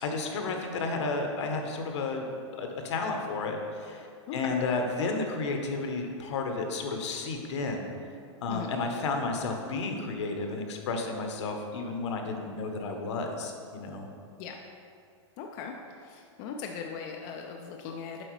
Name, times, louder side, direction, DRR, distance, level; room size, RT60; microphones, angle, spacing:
voice 1, 0.0-2.2 2.6-7.9 8.4-14.1, left 3 dB, 70° left, 3 dB, 0.9 m, -32 dB
voice 2, 4.3-4.6 8.5-8.7 14.4-14.6 15.4-15.7 16.0-18.2, left 6 dB, 35° left, 2 dB, 0.4 m, -39 dB
7.7 x 4.5 x 3.2 m, 2.3 s
supercardioid pair, 150°, 16 cm